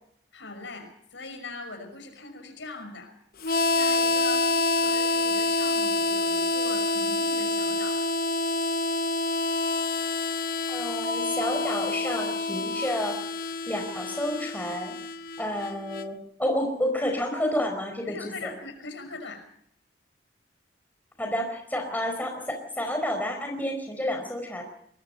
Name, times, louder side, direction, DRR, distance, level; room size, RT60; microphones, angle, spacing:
voice 1, 0.3-3.1 3.4-8.0 18.0-19.4, left 3 dB, 85° left, 7 dB, 5.8 m, -41 dB
Harmonica, 3.4-16.1, left 2 dB, 50° left, 0.8 m, -27 dB
voice 2, 10.7-13.2 13.7-14.9 15.4-18.5 21.2-24.6, left 1 dB, 10° left, 3 dB, 4.7 m, -30 dB
23.0 x 20.5 x 5.5 m, 0.69 s
head